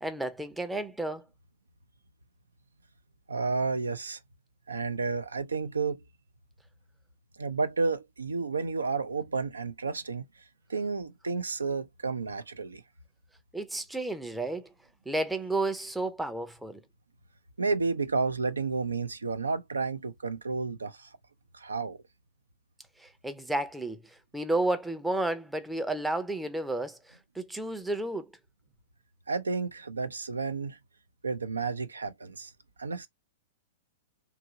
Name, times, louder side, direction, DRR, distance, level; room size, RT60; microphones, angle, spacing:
voice 1, 0.0-1.3 13.5-14.7 15.1-16.8 23.0-28.3, right 2 dB, 5° right, 0.5 m, -32 dB
voice 2, 3.3-4.2 4.7-6.0 7.4-10.4 10.7-12.8 17.6-21.2 21.5-22.0 29.3-30.8 31.2-32.5 32.8-33.1, right 4 dB, 85° right, 0.4 m, -31 dB
2.9 x 2.5 x 2.6 m
figure-of-eight pair, 105°, 0 cm